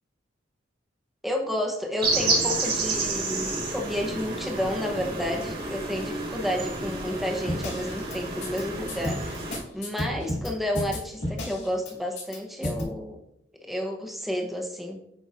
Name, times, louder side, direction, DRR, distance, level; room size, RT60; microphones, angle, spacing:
voice 1, 1.2-9.4 9.7-13.2 13.6-15.0, left 1 dB, ahead, 1 dB, 0.8 m, -31 dB
sound 1, 2.0-9.6, right 3 dB, 50° right, 2.5 m, -30 dB
sound 2, 7.5-8.2 8.4-8.6 8.9-10.5 10.7-11.9 12.2-12.4 12.6-12.8, left 1 dB, 70° left, 2.1 m, -31 dB
8.0 x 5.5 x 2.5 m, 0.76 s
head